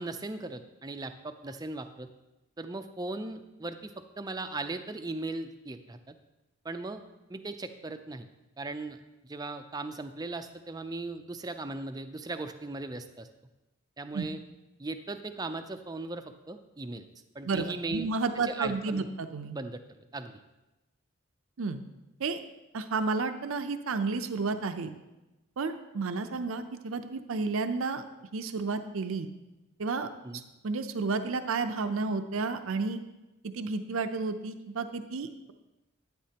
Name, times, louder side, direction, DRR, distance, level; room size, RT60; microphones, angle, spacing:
voice 1, 0.0-2.1 2.6-6.1 6.6-7.0 7.3-8.3 8.6-9.0 9.2-13.3 14.0-14.4 14.8-17.1 17.3-18.1 18.4-19.1 19.5-19.8 20.1-20.3 30.2-30.4, right 2 dB, 20° right, 8 dB, 0.4 m, -38 dB
voice 2, 17.4-19.6 21.6-21.8 22.2-22.4 22.7-24.9 25.6-28.0 28.3-29.3 29.8-33.0 33.4-35.5, right 4 dB, 75° right, 9 dB, 0.5 m, -32 dB
11.5 x 9.4 x 2.9 m, 1.0 s
head